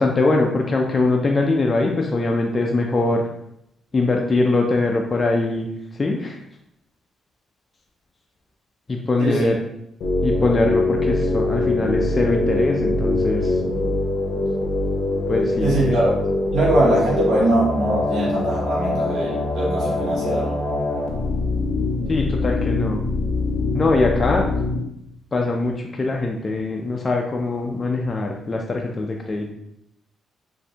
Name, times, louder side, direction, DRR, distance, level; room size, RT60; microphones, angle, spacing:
voice 1, 0.0-3.3 3.9-5.7 6.0-6.4 8.9-9.5 10.2-13.6 15.3-16.1 22.1-23.0 23.7-24.5 25.3-29.5, left 2 dB, 30° left, 0 dB, 0.4 m, -22 dB
voice 2, 9.2-9.5 15.6-16.1 16.5-20.6, right 1 dB, 75° right, -5 dB, 0.9 m, -21 dB
sound 1, 10.0-24.8, left 2 dB, 65° left, 0.6 m, -23 dB
3.1 x 2.5 x 2.8 m, 0.79 s
cardioid pair, 90°, 0 cm